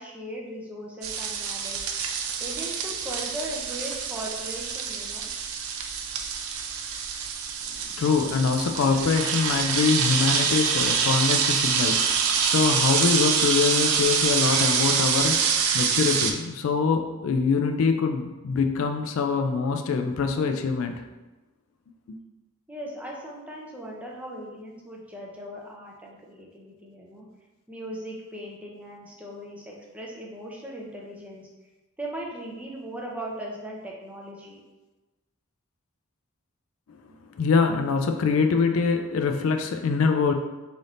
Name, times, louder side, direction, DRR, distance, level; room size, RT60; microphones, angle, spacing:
voice 1, 0.0-1.8 2.4-5.3 22.7-27.3 27.7-31.5 32.0-34.6, right 1 dB, 5° right, -3 dB, 0.5 m, -38 dB
sound 1, 1.0-16.3, right 6 dB, 75° right, 0.4 m, -26 dB
voice 2, 8.0-21.0 22.1-22.2 37.4-40.3, left 5 dB, 65° left, 5 dB, 0.3 m, -24 dB
3.4 x 2.7 x 3.8 m, 1.1 s
head